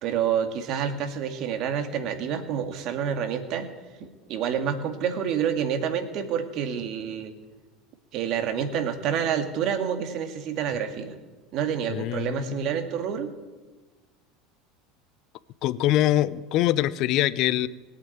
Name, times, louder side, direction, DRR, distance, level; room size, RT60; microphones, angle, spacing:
voice 1, 0.0-3.7 4.0-7.3 8.1-11.2 11.5-13.3, right 8 dB, 55° right, 7 dB, 2.1 m, -28 dB
voice 2, 11.9-12.6 15.6-17.7, left 14 dB, 60° left, 18 dB, 0.7 m, -24 dB
18.0 x 8.7 x 9.1 m, 1.3 s
supercardioid pair, 95°, 0 cm